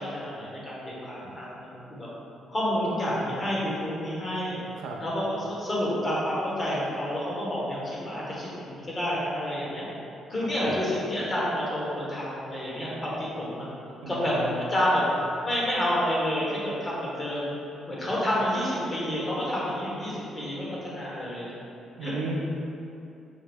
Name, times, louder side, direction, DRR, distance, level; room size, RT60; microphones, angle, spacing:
voice 1, 0.0-2.1 2.5-4.6 5.0-9.9 10.3-13.7 14.1-14.4 14.7-15.0 15.4-17.6 17.9-21.5 22.0-22.1, equal, 25° left, -6 dB, 1.1 m, -29 dB
voice 2, 14.0-14.7 22.0-22.3, right 2 dB, 90° right, -1 dB, 0.5 m, -35 dB
5.5 x 2.0 x 3.4 m, 2.7 s
cardioid pair, 90°, 0 cm